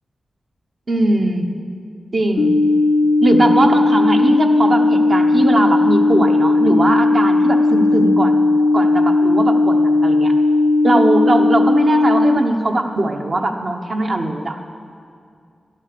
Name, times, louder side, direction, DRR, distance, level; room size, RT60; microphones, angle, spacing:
voice 1, 0.9-1.5 2.1-2.6 3.2-8.5 8.7-10.3 10.8-14.6, right 2 dB, 50° right, 4 dB, 1.1 m, -19 dB
sound 1, 2.4-12.4, left 2 dB, 70° left, 0.4 m, -15 dB
12.0 x 11.0 x 6.9 m, 2.4 s
wide cardioid pair, 90°, 0 cm